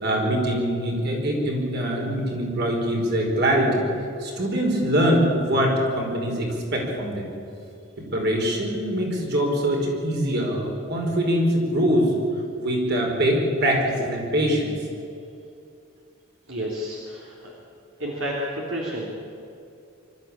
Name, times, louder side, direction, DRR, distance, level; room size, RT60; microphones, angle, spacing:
voice 1, 0.0-3.8 4.2-7.3 8.0-12.1 12.6-14.7, equal, 55° right, 0 dB, 5.0 m, -23 dB
voice 2, 16.5-17.5 18.0-19.1, equal, 70° right, -4 dB, 3.3 m, -30 dB
25.0 x 13.5 x 8.7 m, 2.6 s
head